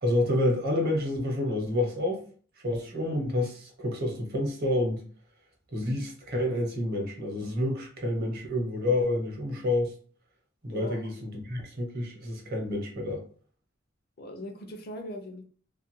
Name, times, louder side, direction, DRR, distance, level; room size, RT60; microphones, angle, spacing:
voice 1, 0.0-2.2 2.6-5.0 5.7-9.9 10.6-13.2, left 1 dB, 50° right, 0.8 m, -29 dB
voice 2, 10.7-11.1 14.2-15.4, left 1 dB, 50° left, 0.5 m, -39 dB
2.6 x 2.4 x 3.0 m
head